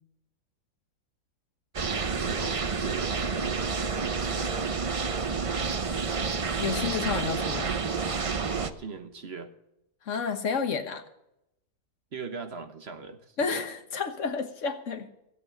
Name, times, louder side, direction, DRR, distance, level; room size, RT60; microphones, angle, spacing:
sound 1, 1.7-8.7, right 5 dB, 60° right, 0.3 m, -29 dB
voice 1, 2.2-5.6 8.5-9.5 12.1-13.4, right 5 dB, 45° right, 8 dB, 1.2 m, -41 dB
voice 2, 6.6-7.8 10.0-11.0 13.4-15.1, left 5 dB, 50° left, 7 dB, 1.5 m, -30 dB
16.0 x 8.3 x 7.0 m, 0.83 s
omnidirectional pair, 1.7 m